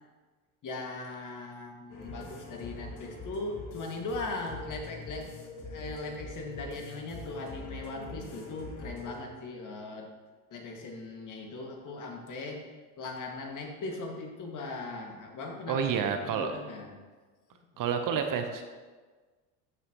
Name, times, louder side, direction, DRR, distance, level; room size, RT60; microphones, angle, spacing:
voice 1, 0.6-5.3 5.6-10.1 10.5-15.8 16.2-16.9, left 3 dB, 45° left, 1 dB, 2.1 m, -39 dB
sound 1, 1.9-9.2, left 1 dB, 65° left, 2.7 m, -43 dB
voice 2, 15.7-16.5 17.8-18.6, right 7 dB, 45° right, 6 dB, 1.0 m, -29 dB
14.0 x 6.2 x 3.1 m, 1.3 s
hypercardioid pair, 75°, 44 cm